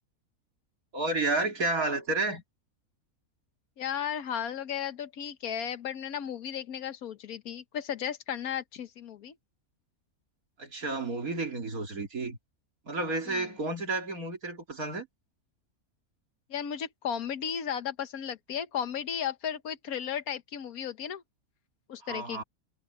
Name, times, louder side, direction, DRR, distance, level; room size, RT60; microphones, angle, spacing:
voice 1, 0.9-2.4 10.6-12.4 12.9-15.1 22.0-22.4, right 2 dB, 80° right, 3.4 m, -31 dB
voice 2, 3.8-9.3 13.3-13.5 16.5-21.2 21.9-22.4, left 8 dB, 85° left, 1.5 m, -35 dB
omnidirectional pair, 1.5 m